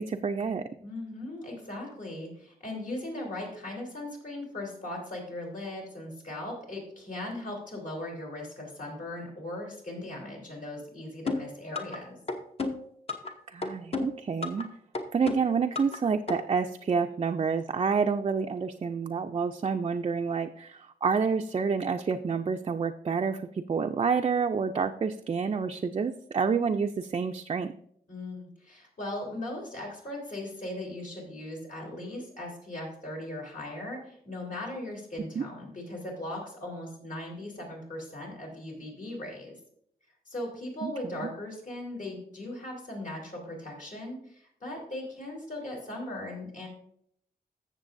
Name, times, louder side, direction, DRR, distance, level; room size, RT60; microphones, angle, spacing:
voice 1, 0.0-0.7 13.5-14.7 15.1-27.7 35.4-35.5 40.8-41.3, right 5 dB, 35° right, 4 dB, 0.4 m, -28 dB
voice 2, 0.8-12.2 28.1-39.5 40.3-46.7, left 1 dB, 55° left, -1 dB, 3.4 m, -38 dB
sound 1, 11.3-12.0 12.3-13.3 13.6-14.6 14.9-16.0 16.3-16.4, left 3 dB, 35° left, 0.9 m, -32 dB
14.5 x 6.8 x 2.6 m, 0.68 s
wide cardioid pair, 140°, 16 cm